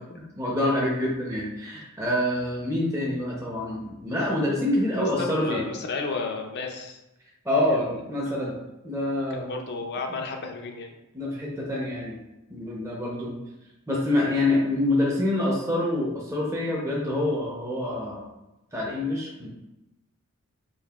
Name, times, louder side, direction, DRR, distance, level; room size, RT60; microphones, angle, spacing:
voice 1, 0.1-5.6 7.4-8.6 8.8-9.5 11.1-12.2 12.5-13.3 13.9-18.2 18.7-19.5, left 1 dB, 15° right, -4 dB, 0.6 m, -26 dB
voice 2, 4.9-7.0 7.7-7.9 8.3-8.5 9.3-10.9, left 4 dB, 50° left, 3 dB, 0.5 m, -33 dB
5.2 x 2.5 x 2.4 m, 0.96 s
head